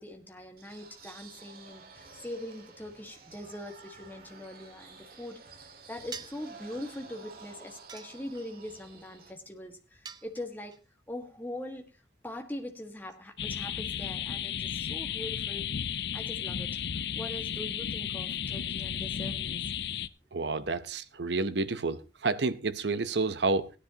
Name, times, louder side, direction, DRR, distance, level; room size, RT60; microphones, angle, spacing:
voice 1, 0.0-10.8 11.1-11.9 12.2-16.8 17.1-19.7, left 1 dB, 10° left, 1.6 m, -42 dB
sound 1, 0.6-9.3, right 4 dB, 55° right, 1.9 m, -52 dB
sound 2, 6.1-6.5 7.9-8.6 10.0-10.8, right 6 dB, 25° right, 0.6 m, -45 dB
sound 3, 13.4-20.1, left 8 dB, 65° left, 0.5 m, -34 dB
voice 2, 20.3-23.7, right 3 dB, 80° right, 0.8 m, -30 dB
17.0 x 10.0 x 2.9 m
head